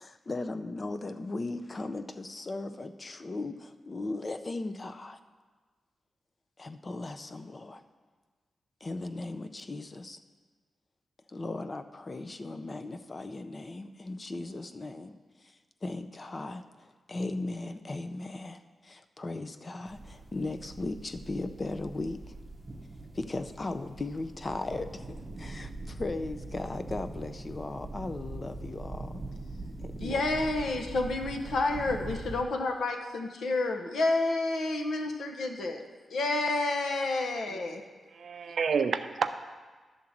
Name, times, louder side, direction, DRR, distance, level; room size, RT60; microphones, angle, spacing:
voice 1, 0.0-5.2 6.6-7.8 8.8-10.2 11.3-22.2 23.1-29.2 29.8-30.2, left 2 dB, 30° left, 9 dB, 0.4 m, -37 dB
sound 1, 19.8-32.4, right 2 dB, 20° right, 0.8 m, -42 dB
voice 2, 30.0-35.8 36.1-37.8, left 2 dB, 80° left, 4 dB, 0.9 m, -29 dB
voice 3, 38.1-39.4, right 6 dB, 60° right, 9 dB, 0.5 m, -29 dB
11.0 x 3.8 x 7.1 m, 1.4 s
wide cardioid pair, 145°, 0 cm